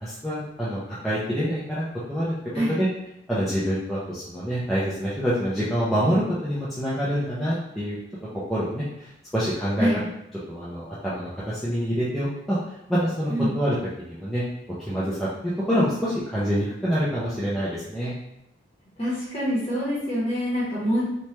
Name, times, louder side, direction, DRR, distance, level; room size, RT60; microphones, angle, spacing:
voice 1, 0.0-2.3 2.7-2.9 3.3-8.0 8.5-9.1 9.3-9.9 10.5-12.6 12.9-13.8 14.1-14.4 14.8-18.1, equal, ahead, -10 dB, 0.4 m, -26 dB
voice 2, 19.0-21.0, equal, 30° left, -8 dB, 0.8 m, -25 dB
3.1 x 2.1 x 2.8 m, 0.83 s
head